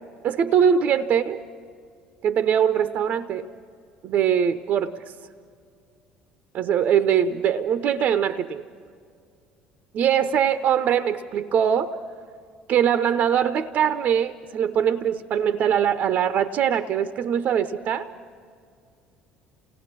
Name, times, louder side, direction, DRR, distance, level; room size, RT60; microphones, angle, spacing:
voice 1, 0.2-1.4 2.2-3.5 4.0-5.0 6.5-8.6 9.9-11.9 12.7-18.1, right 8 dB, 50° right, 10 dB, 0.7 m, -22 dB
29.0 x 18.5 x 6.0 m, 2.3 s
figure-of-eight pair, 60°, 4 cm